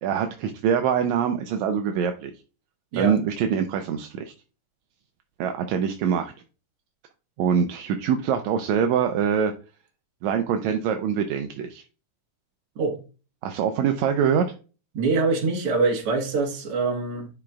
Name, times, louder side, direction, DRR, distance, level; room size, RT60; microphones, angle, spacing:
voice 1, 0.0-2.3 3.0-4.3 5.4-6.3 7.4-9.5 10.2-11.8 13.4-14.5, right 7 dB, 80° right, 1.7 m, -24 dB
voice 2, 14.9-17.3, right 3 dB, 55° right, 2.0 m, -24 dB
10.5 x 5.0 x 2.4 m
omnidirectional pair, 3.6 m